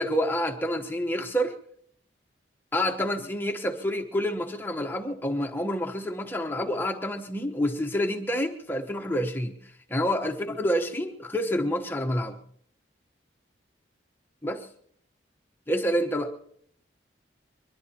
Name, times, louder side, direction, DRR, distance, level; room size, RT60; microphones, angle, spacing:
voice 1, 0.0-1.6 2.7-9.6 9.9-12.4 14.4-14.7 15.7-16.3, equal, 10° left, 1.1 m, -28 dB
23.5 x 21.0 x 2.9 m
head